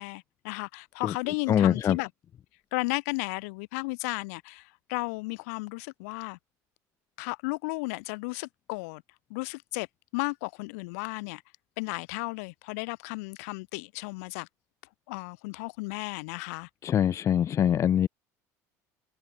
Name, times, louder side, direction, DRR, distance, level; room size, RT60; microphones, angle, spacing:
voice 1, 0.0-2.1 2.7-6.4 7.2-9.0 9.3-9.9 10.1-11.4 11.8-14.5 15.1-16.7, left 28 dB, 85° left, 1.9 m, -34 dB
voice 2, 1.5-2.0 16.8-18.1, left 9 dB, 40° left, 0.6 m, -23 dB
supercardioid pair, 105°, 8 cm